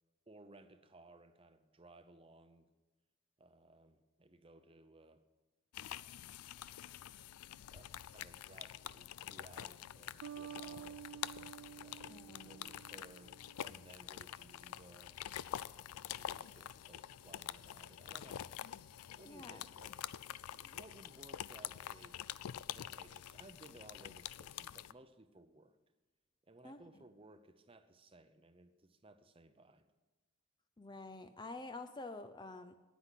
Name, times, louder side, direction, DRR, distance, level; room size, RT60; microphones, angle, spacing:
voice 1, 0.3-2.7 3.4-5.2 7.7-11.2 11.8-13.3 13.6-15.2 15.8-18.5 19.1-20.0 20.5-22.2 22.7-25.8 26.4-29.9, right 2 dB, 25° right, 10 dB, 0.7 m, -60 dB
sound 1, 5.7-24.9, left 11 dB, 90° left, 0.4 m, -47 dB
Bass guitar, 10.2-13.8, right 9 dB, 80° right, 0.3 m, -51 dB
voice 2, 12.1-12.7 19.3-19.6 26.6-26.8 30.8-32.7, left 2 dB, 20° left, 9 dB, 0.4 m, -48 dB
9.7 x 9.7 x 8.2 m, 1.1 s
head